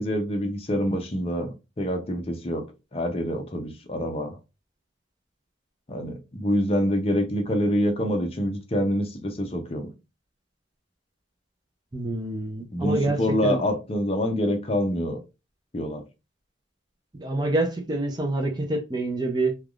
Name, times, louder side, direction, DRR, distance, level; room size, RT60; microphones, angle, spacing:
voice 1, 0.0-2.7 2.9-4.4 5.9-9.9 12.7-15.2 15.7-16.0, equal, 30° left, 0.5 m, -26 dB
voice 2, 11.9-13.6 17.1-19.6, right 2 dB, 20° right, 0.4 m, -27 dB
3.3 x 2.3 x 2.3 m
head